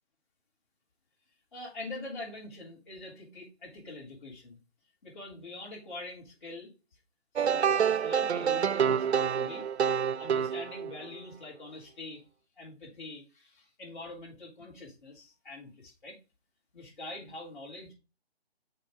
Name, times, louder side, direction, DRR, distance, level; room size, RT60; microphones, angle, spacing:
voice 1, 1.5-4.6 5.0-6.7 7.4-12.2 12.6-16.2 16.7-17.9, left 2 dB, 50° left, -5 dB, 3.4 m, -44 dB
sound 1, 7.4-11.2, right 7 dB, 85° right, 0.6 m, -27 dB
6.6 x 3.9 x 4.9 m, 0.29 s
hypercardioid pair, 165°, 32 cm